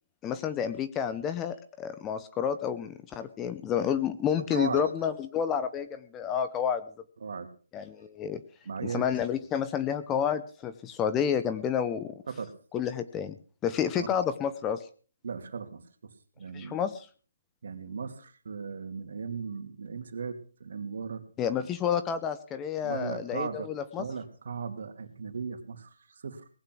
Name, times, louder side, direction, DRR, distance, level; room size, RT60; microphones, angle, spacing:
voice 1, 0.2-6.8 7.7-8.4 8.8-12.2 12.7-13.4 13.6-14.8 16.5-17.1 21.4-24.1, left 8 dB, 15° left, 11 dB, 0.7 m, -30 dB
voice 2, 4.4-5.1 7.2-7.5 8.6-9.1 12.3-12.5 14.0-14.1 15.2-16.9 17.6-21.2 21.5-21.7 22.8-23.7 24.0-26.5, right 5 dB, 55° right, 6 dB, 2.7 m, -37 dB
19.0 x 8.9 x 6.2 m, 0.40 s
hypercardioid pair, 165°, 0 cm